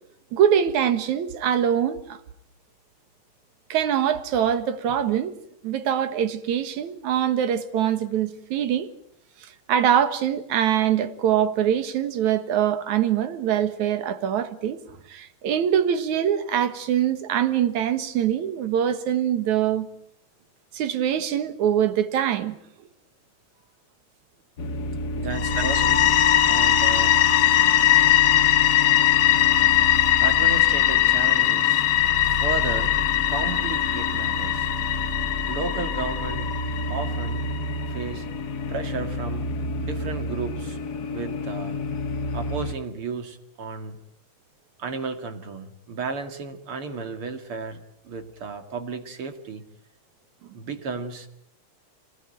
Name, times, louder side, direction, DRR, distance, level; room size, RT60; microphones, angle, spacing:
voice 1, 0.3-2.2 3.7-5.3 5.6-8.9 9.4-14.8 15.1-19.9 20.7-22.6 25.6-25.7, right 9 dB, 75° right, 2.9 m, -23 dB
sound 1, 24.6-42.8, left 2 dB, 55° left, 1.1 m, -30 dB
voice 2, 25.2-26.2 26.4-27.1 30.2-31.8 32.2-32.9 33.3-34.7 35.5-36.5 36.9-37.5 37.9-38.3 38.7-39.5 39.8-40.8 41.1-41.8 42.3-44.0 44.8-47.8 48.0-49.6 50.5-51.3, right 4 dB, 50° right, 2.7 m, -33 dB
sound 2, 25.3-38.0, left 13 dB, 75° left, 2.5 m, -21 dB
27.0 x 19.0 x 8.9 m
omnidirectional pair, 3.4 m